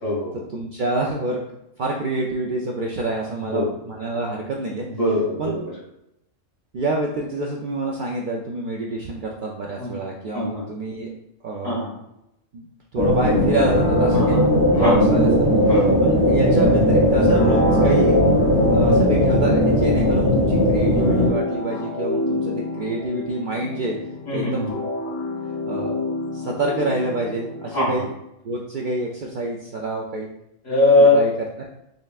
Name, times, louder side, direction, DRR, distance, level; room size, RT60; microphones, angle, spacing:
voice 1, 0.0-0.4 3.5-3.7 4.9-5.7 9.8-10.0 10.3-10.6 11.6-11.9 14.1-14.4 14.7-14.9 15.7-15.9 24.3-24.7 27.7-27.9 30.6-31.2, left 2 dB, 85° left, -4 dB, 1.9 m, -20 dB
voice 2, 0.5-1.4 1.8-4.9 5.4-5.6 6.7-11.1 11.4-11.8 12.5-12.7 12.9-14.4 14.7-18.2 18.7-24.0 24.3-24.7 25.0-25.1 25.7-26.0 26.3-28.1 28.4-30.3 31.0-31.3 31.6-31.7, right 2 dB, 65° right, -1 dB, 0.5 m, -27 dB
sound 1, 13.0-21.3, left 1 dB, 30° right, 0.8 m, -18 dB
sound 2, 13.6-28.1, equal, 60° left, 0.9 m, -29 dB
4.0 x 3.3 x 2.4 m, 0.82 s
omnidirectional pair, 1.3 m